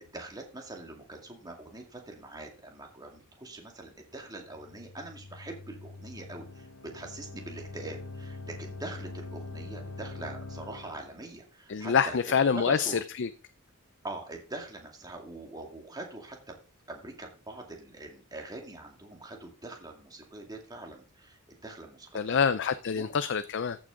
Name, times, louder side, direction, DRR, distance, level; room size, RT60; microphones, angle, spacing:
voice 1, 0.0-13.0 14.0-16.6 16.9-22.4 22.9-23.1, right 2 dB, 20° right, 2.3 m, -43 dB
sound 1, 4.4-11.2, left 3 dB, 85° left, 1.0 m, -43 dB
voice 2, 11.7-13.3 22.1-23.8, left 6 dB, 60° left, 0.5 m, -26 dB
14.0 x 6.3 x 3.8 m
head